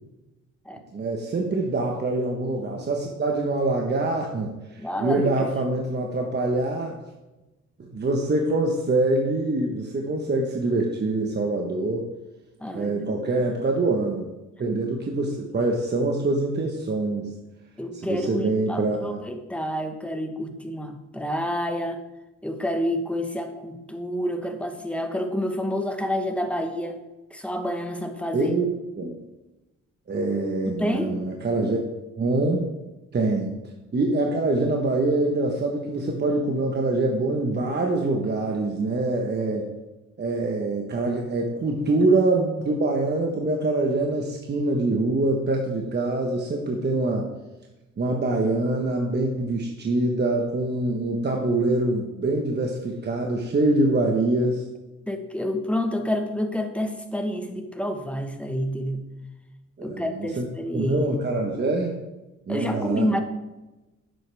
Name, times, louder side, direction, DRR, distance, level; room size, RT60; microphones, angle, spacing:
voice 1, 0.9-6.9 7.8-12.0 12.7-14.3 14.6-17.3 18.1-19.2 28.3-28.7 29.0-29.2 30.1-31.8 32.2-32.6 33.1-33.6 33.9-39.7 40.2-47.3 48.0-54.7 59.8-60.5 60.7-61.9 62.5-63.0, right 2 dB, 35° right, 1 dB, 1.2 m, -24 dB
voice 2, 4.8-5.5 12.6-13.3 17.8-22.0 22.4-27.0 27.3-28.6 30.6-31.2 55.1-59.1 59.8-61.3 62.5-63.2, left 1 dB, 5° left, 5 dB, 1.2 m, -29 dB
10.0 x 7.8 x 3.4 m, 1.1 s
cardioid pair, 90°, 30 cm